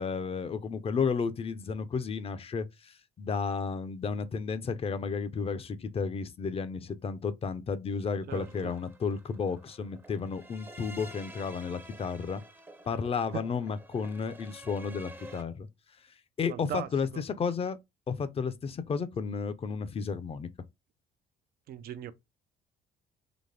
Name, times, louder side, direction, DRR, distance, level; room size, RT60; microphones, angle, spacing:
voice 1, 0.0-12.4 12.9-15.7 16.4-17.8 18.1-20.5, left 5 dB, 35° left, 0.7 m, -32 dB
sound 1, 8.3-15.4, right 1 dB, 15° right, 0.7 m, -50 dB
voice 2, 8.3-8.7 13.3-13.4 16.5-17.2 21.7-22.1, right 11 dB, 65° right, 0.6 m, -39 dB
4.1 x 3.0 x 3.4 m
cardioid pair, 110°, 17 cm